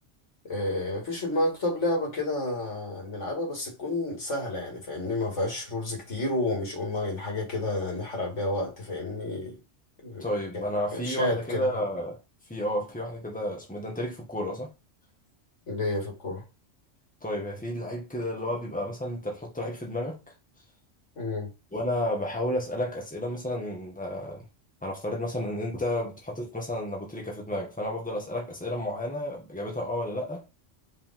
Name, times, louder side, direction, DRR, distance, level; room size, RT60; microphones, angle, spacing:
voice 1, 0.4-9.6 10.0-10.3 10.5-10.7 10.9-11.8 15.7-16.4 21.2-21.5, left 2 dB, 70° left, 2.7 m, -30 dB
voice 2, 10.2-12.2 12.5-14.7 17.2-20.2 21.7-24.5 24.8-30.5, left 1 dB, 5° left, 1.8 m, -32 dB
5.2 x 5.0 x 3.8 m
omnidirectional pair, 1.3 m